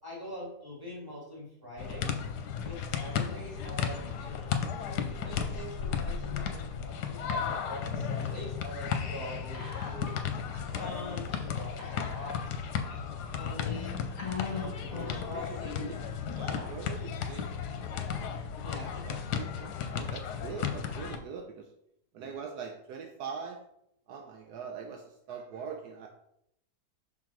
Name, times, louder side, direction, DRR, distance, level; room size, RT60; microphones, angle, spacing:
voice 1, 0.0-2.2 2.6-4.5 4.8-10.2 10.6-15.8 16.5-16.8 18.6-19.1, left 1 dB, 15° right, -5 dB, 2.7 m, -44 dB
sound 1, 1.8-21.2, left 7 dB, 75° left, 1.3 m, -34 dB
Whispering, 9.5-10.3 10.5-10.6 11.8-12.6 13.3-13.4 14.2-15.4, left 5 dB, 40° left, 2.0 m, -40 dB
voice 2, 15.3-16.0 16.3-17.7 19.0-21.7 22.1-23.6 24.1-26.1, right 6 dB, 75° right, 3 dB, 1.2 m, -42 dB
6.1 x 4.0 x 4.5 m, 0.74 s
omnidirectional pair, 1.8 m